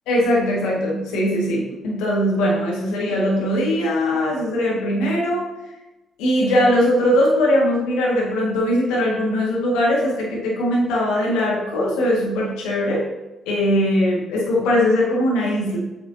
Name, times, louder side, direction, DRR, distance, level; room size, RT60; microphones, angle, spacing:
voice 1, 0.1-5.5 6.2-13.1 13.5-15.8, left 1 dB, 75° left, -4 dB, 1.8 m, -20 dB
8.3 x 6.5 x 2.8 m, 1.1 s
hypercardioid pair, 45°, 0 cm